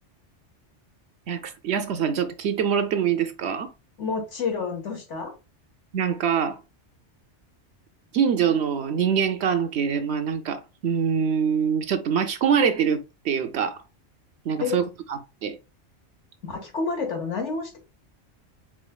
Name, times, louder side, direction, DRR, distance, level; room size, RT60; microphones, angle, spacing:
voice 1, 1.3-3.7 5.9-6.6 8.1-13.8 14.5-14.8 15.1-15.6, right 7 dB, 70° right, 0.8 m, -24 dB
voice 2, 4.0-5.3 14.6-14.8 16.4-17.8, left 5 dB, 80° left, 1.6 m, -29 dB
4.7 x 3.8 x 2.2 m
omnidirectional pair, 1.2 m